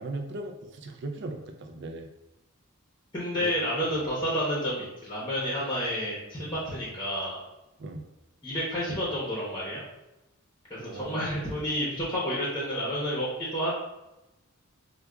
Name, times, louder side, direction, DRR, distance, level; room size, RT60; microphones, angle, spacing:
voice 1, 0.0-2.1 3.3-3.5 6.4-6.5 7.8-8.0 10.8-11.5, right 2 dB, 50° right, 4 dB, 0.4 m, -38 dB
voice 2, 3.1-7.4 8.4-9.8 10.7-13.7, equal, 20° left, -6 dB, 0.7 m, -30 dB
4.8 x 2.2 x 2.3 m, 0.96 s
head